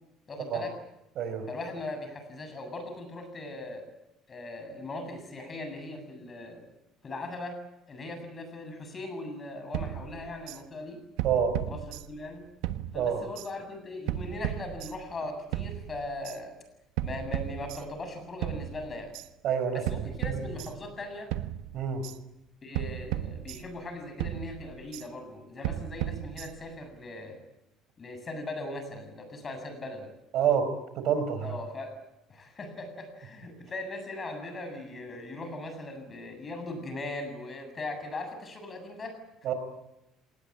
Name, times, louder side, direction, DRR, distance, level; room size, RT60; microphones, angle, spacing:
voice 1, 0.3-0.7 1.5-3.9 4.3-6.7 7.0-7.6 7.9-11.0 11.7-12.4 12.9-16.5 17.0-19.1 19.7-21.3 22.6-27.4 28.0-30.1 31.4-31.9 32.3-39.2, left 2 dB, 30° left, 7 dB, 7.6 m, -39 dB
sound 1, 9.7-10.6 11.2-12.3 12.6-13.5 14.1-15.2 15.5-16.4 17.0-18.1 18.4-19.3 19.9-21.0 21.3-22.2 22.7-23.9 24.2-25.1 25.6-26.8, right 12 dB, 90° right, 1.3 m, -35 dB
voice 2, 11.2-11.5 12.9-13.2 19.4-19.8 20.3-20.4 21.7-22.0 30.3-30.7 31.0-31.5 39.4-39.5, right 8 dB, 60° right, 9 dB, 5.0 m, -27 dB
27.0 x 19.5 x 8.7 m, 0.89 s
cardioid pair, 120°, 0 cm